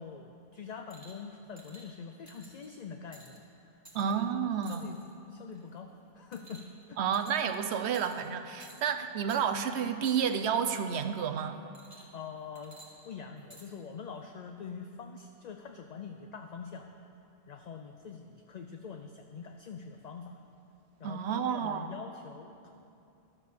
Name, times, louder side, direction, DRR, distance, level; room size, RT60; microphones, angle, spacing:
voice 1, 0.0-3.8 4.1-4.3 4.7-5.0 5.3-7.0 12.1-16.9 17.5-20.4 21.0-22.7, left 6 dB, 50° left, 5 dB, 0.5 m, -44 dB
sound 1, 0.9-1.2 1.6-1.9 2.3-2.7 3.1-3.4 3.9-4.1 4.6-5.1 5.5-5.8 6.3-6.8 7.1-7.6 7.9-8.3 8.6-8.9 9.3-9.4 10.0-10.4 11.7-12.2 12.6-13.7 14.5-14.6, right 1 dB, 15° right, 1.8 m, -54 dB
voice 2, 3.9-4.9 7.0-11.6 21.0-21.9, right 7 dB, 75° right, 8 dB, 0.9 m, -30 dB
12.0 x 7.4 x 6.5 m, 2.8 s
omnidirectional pair, 1.1 m